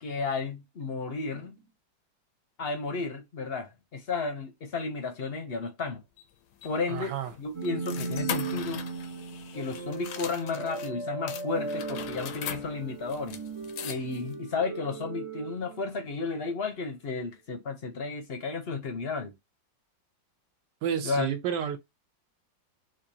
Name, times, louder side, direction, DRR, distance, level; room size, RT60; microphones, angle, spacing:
voice 1, 0.0-1.6 2.6-6.0 6.6-8.8 9.5-13.4 13.8-19.3 21.0-21.4, left 4 dB, 50° left, 0.7 m, -33 dB
sound 1, 6.2-10.9 11.3-14.3, left 9 dB, 70° left, 1.1 m, -41 dB
voice 2, 6.9-7.3 20.8-21.8, right 9 dB, 70° right, 1.4 m, -30 dB
sound 2, 7.5-16.5, right 4 dB, 45° right, 0.4 m, -37 dB
4.4 x 2.5 x 2.7 m
omnidirectional pair, 2.0 m